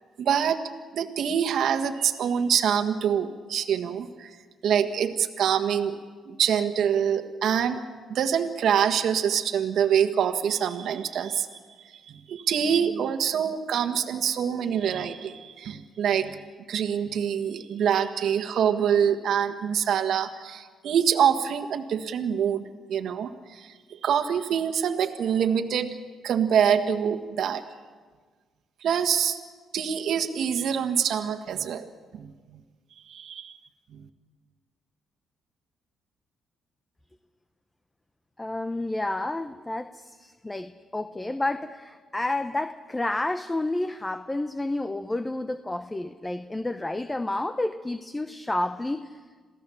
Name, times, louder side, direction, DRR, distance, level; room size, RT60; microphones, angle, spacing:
voice 1, 0.2-4.4 4.6-6.0 6.3-7.8 8.1-11.6 11.9-16.4 16.7-25.9 26.2-27.6 28.8-29.4 29.7-32.3 33.1-33.5 33.9-34.1, right 8 dB, 70° right, 8 dB, 1.5 m, -25 dB
voice 2, 38.4-49.2, left 2 dB, 15° left, 10 dB, 0.8 m, -30 dB
27.5 x 16.5 x 7.1 m, 1.5 s
cardioid pair, 90°, 0 cm